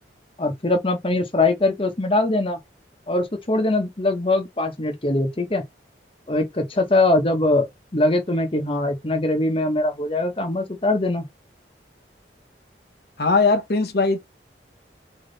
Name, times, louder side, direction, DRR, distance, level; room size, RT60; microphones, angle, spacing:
voice 1, 0.4-2.6 3.1-5.6 6.3-11.2, left 2 dB, 30° left, 1.0 m, -22 dB
voice 2, 13.2-14.2, left 3 dB, 60° left, 0.9 m, -19 dB
3.4 x 3.1 x 4.0 m
head